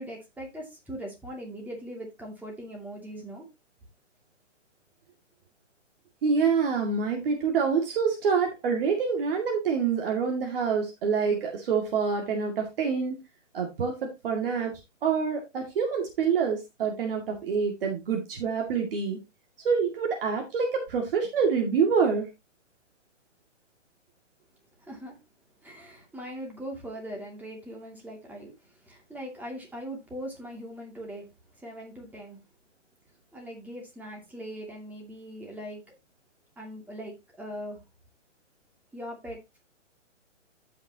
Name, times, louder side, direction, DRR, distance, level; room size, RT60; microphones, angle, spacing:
voice 1, 0.0-3.5 24.8-25.2 25.6-31.3 31.6-32.4 33.3-35.8 36.6-37.8 38.9-39.6, equal, 5° right, 2.4 m, -40 dB
voice 2, 6.2-13.2 13.5-19.2 19.6-22.3, right 6 dB, 50° right, 2.3 m, -26 dB
14.0 x 5.9 x 2.9 m
hypercardioid pair, 140°, 37 cm